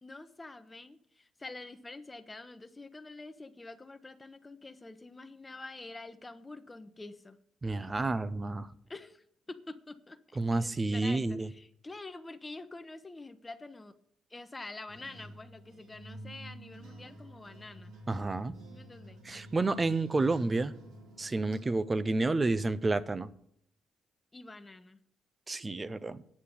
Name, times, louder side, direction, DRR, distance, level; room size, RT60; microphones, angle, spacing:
voice 1, 0.0-7.4 8.9-13.9 14.3-17.9 18.7-19.2 24.3-25.0, left 2 dB, 20° left, 10 dB, 1.0 m, -47 dB
voice 2, 7.6-8.7 10.4-11.5 18.1-18.5 19.2-20.7 21.2-23.3 25.5-26.2, right 2 dB, 25° right, 16 dB, 0.7 m, -30 dB
sound 1, 14.9-21.6, right 1 dB, 85° right, 3.3 m, -50 dB
9.7 x 6.7 x 7.2 m, 0.68 s
cardioid pair, 90°, 0 cm